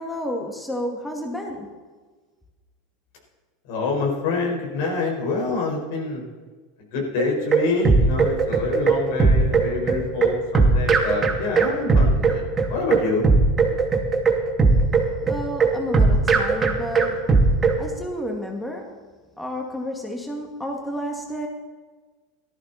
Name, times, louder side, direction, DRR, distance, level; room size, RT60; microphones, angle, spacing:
voice 1, 0.0-1.7 15.2-17.3 17.8-19.0 19.4-21.5, equal, 5° left, 1 dB, 2.2 m, -31 dB
voice 2, 3.7-6.2 6.9-13.3, left 3 dB, 65° left, 0 dB, 5.0 m, -26 dB
sound 1, 7.2-17.8, right 4 dB, 25° right, 2.7 m, -18 dB
17.5 x 13.5 x 4.3 m, 1.4 s
hypercardioid pair, 90°, 0 cm